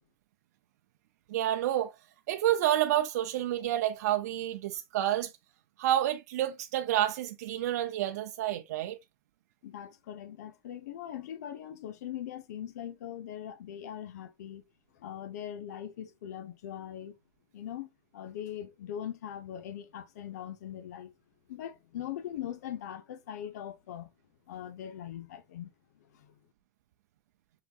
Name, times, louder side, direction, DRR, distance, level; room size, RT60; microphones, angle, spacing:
voice 1, 1.3-1.9 2.3-5.3 5.8-9.0, right 12 dB, 80° right, 0.5 m, -29 dB
voice 2, 9.6-14.6 14.9-17.2 17.5-21.1 21.5-24.1 24.5-26.3, left 10 dB, 85° left, 0.8 m, -41 dB
5.8 x 3.6 x 2.4 m
supercardioid pair, 140°, 9 cm